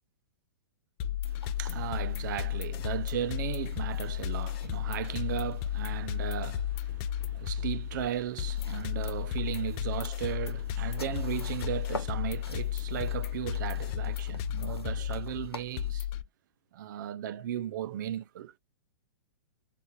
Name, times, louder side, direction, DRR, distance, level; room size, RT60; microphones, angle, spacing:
sound 1, 1.0-16.2, left 11 dB, 35° left, 0.4 m, -33 dB
sound 2, 1.2-15.9, left 3 dB, 85° left, 1.0 m, -49 dB
voice 1, 1.2-16.1 16.7-18.5, right 11 dB, 50° right, 0.5 m, -36 dB
7.0 x 2.5 x 2.2 m
hypercardioid pair, 115°, 13 cm